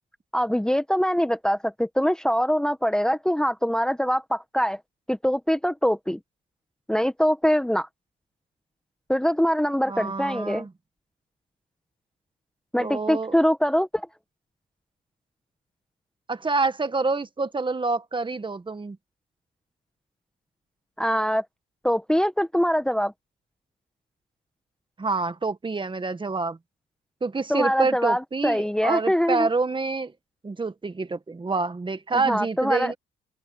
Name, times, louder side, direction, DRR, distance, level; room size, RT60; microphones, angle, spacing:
voice 1, 0.3-4.8 5.1-6.2 6.9-7.9 9.1-10.7 12.7-14.1 21.0-21.4 21.8-23.1 27.5-29.5 32.1-32.9, equal, 5° left, 1.1 m, -23 dB
voice 2, 9.9-10.7 12.8-13.3 16.3-19.0 25.0-26.6 27.2-30.1 30.4-32.9, right 3 dB, 25° right, 1.6 m, -27 dB
open air
cardioid pair, 90°, 20 cm